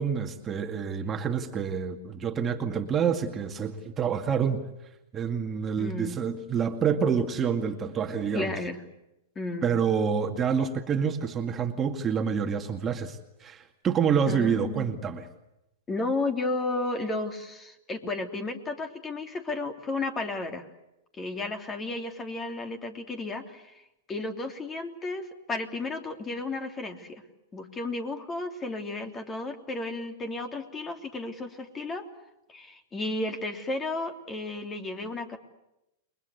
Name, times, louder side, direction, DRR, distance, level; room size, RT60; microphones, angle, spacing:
voice 1, 0.0-4.6 5.1-8.5 9.6-15.3, right 7 dB, 25° right, 4 dB, 2.2 m, -27 dB
voice 2, 5.8-6.2 8.3-8.8 9.3-9.7 14.3-14.9 15.9-20.6 21.2-23.8 24.1-27.2 27.5-32.0 32.5-35.4, left 2 dB, 20° left, 6 dB, 3.2 m, -33 dB
29.5 x 22.0 x 8.1 m, 0.88 s
hypercardioid pair, 115°, 0 cm